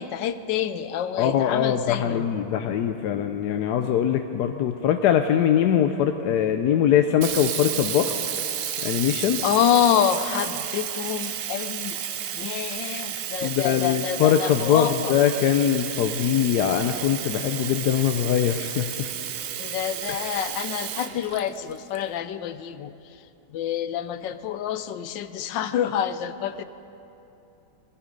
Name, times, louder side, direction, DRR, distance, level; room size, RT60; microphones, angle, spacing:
voice 1, 0.0-2.3 9.4-12.0 12.4-15.2 19.6-22.9 23.5-26.6, left 10 dB, 90° left, 12 dB, 1.3 m, -27 dB
voice 2, 1.2-8.1 8.8-9.4 13.4-19.1, left 9 dB, 70° left, 6 dB, 1.1 m, -22 dB
Sink (filling or washing), 7.2-22.0, right 9 dB, 80° right, 1.4 m, -32 dB
21.0 x 13.0 x 5.3 m, 2.9 s
omnidirectional pair, 1.9 m